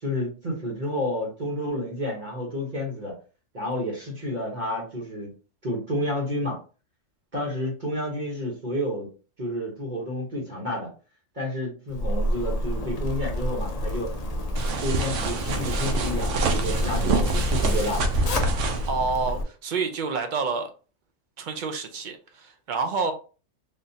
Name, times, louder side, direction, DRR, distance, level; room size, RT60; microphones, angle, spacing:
voice 1, 0.0-3.1 3.5-5.3 5.6-6.6 7.3-9.1 9.4-10.9 11.3-14.1 14.8-18.1, left 1 dB, 40° right, 1.1 m, -30 dB
Zipper (clothing), 11.9-19.4, equal, 55° left, 0.4 m, -28 dB
sound 1, 14.6-18.9, right 3 dB, 80° right, 1.0 m, -27 dB
voice 2, 18.9-20.7 21.4-23.1, right 4 dB, 60° right, 0.5 m, -28 dB
3.7 x 2.5 x 2.7 m
omnidirectional pair, 1.3 m